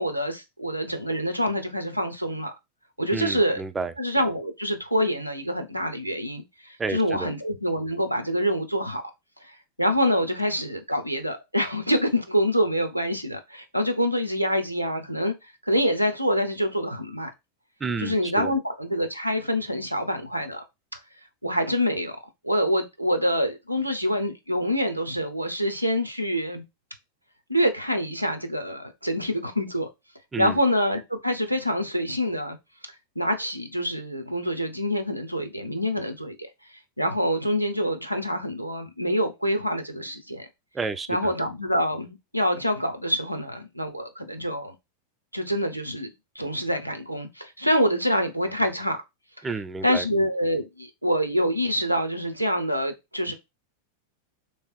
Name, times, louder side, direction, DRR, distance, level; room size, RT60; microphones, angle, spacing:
voice 1, 0.0-2.5 3.0-3.6 4.0-9.0 9.4-15.3 15.6-17.3 18.0-20.6 20.9-21.0 21.4-22.2 22.4-26.6 27.5-29.9 30.4-32.6 33.2-36.5 37.0-40.5 41.1-44.7 45.3-49.0 49.8-53.3, equal, 90° right, 0.8 m, -26 dB
voice 2, 3.1-3.9 6.8-7.3 17.8-18.5 30.3-30.6 40.7-41.3 49.4-50.1, right 4 dB, 15° right, 0.4 m, -31 dB
3.4 x 3.2 x 4.5 m
figure-of-eight pair, 90°, 0 cm